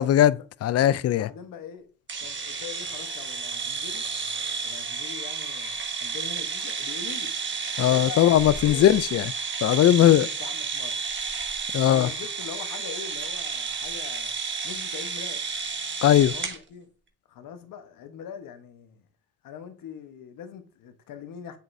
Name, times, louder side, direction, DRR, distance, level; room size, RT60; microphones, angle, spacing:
voice 1, 0.0-1.3 7.8-9.2 9.6-10.3 11.7-12.1 16.0-16.3, left 12 dB, 50° left, 0.4 m, -19 dB
voice 2, 1.1-1.9 2.2-4.0 4.6-7.3 7.9-8.9 10.0-11.0 11.8-14.4 14.6-15.4 16.2-16.9 17.3-19.0 19.4-21.6, left 8 dB, 80° left, 1.1 m, -42 dB
sound 1, 2.1-16.6, right 5 dB, 35° right, 1.5 m, -32 dB
7.8 x 6.6 x 2.6 m
cardioid pair, 80°, 33 cm